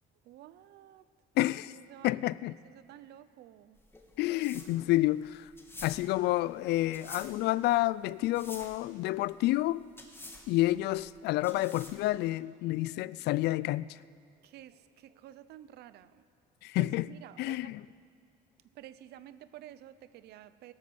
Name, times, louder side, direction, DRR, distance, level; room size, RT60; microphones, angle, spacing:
voice 1, 0.2-1.1 1.7-3.8 14.3-16.2 16.8-17.7 18.7-20.7, right 12 dB, 75° right, 15 dB, 0.7 m, -51 dB
voice 2, 1.4-1.7 2.0-2.5 4.2-5.5 5.8-9.8 10.5-14.0 16.6-17.1 17.4-17.8, left 17 dB, 80° left, 20 dB, 0.4 m, -29 dB
sound 1, 3.7-12.2, left 2 dB, 15° left, 1.8 m, -49 dB
17.0 x 11.5 x 7.0 m, 2.2 s
cardioid pair, 110°, 17 cm